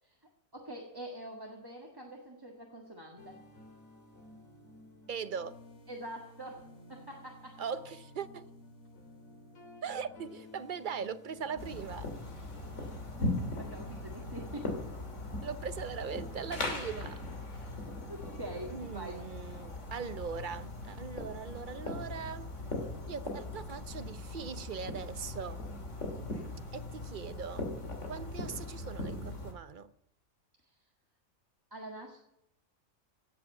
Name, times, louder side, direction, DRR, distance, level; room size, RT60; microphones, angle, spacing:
voice 1, 0.2-3.4 5.9-7.6 12.7-14.8 17.5-19.2 26.3-26.5 30.6-30.8 31.7-32.2, right 1 dB, 15° right, 1.7 m, -45 dB
sound 1, 3.2-14.4, left 1 dB, 80° left, 2.8 m, -54 dB
voice 2, 5.1-5.6 7.6-8.4 9.8-12.1 15.4-17.2 18.7-22.5 23.1-25.6 26.7-27.7 28.1-29.9, right 6 dB, 45° right, 0.7 m, -40 dB
sound 2, 11.6-29.5, left 2 dB, 60° left, 2.8 m, -39 dB
17.0 x 7.6 x 8.5 m
omnidirectional pair, 1.4 m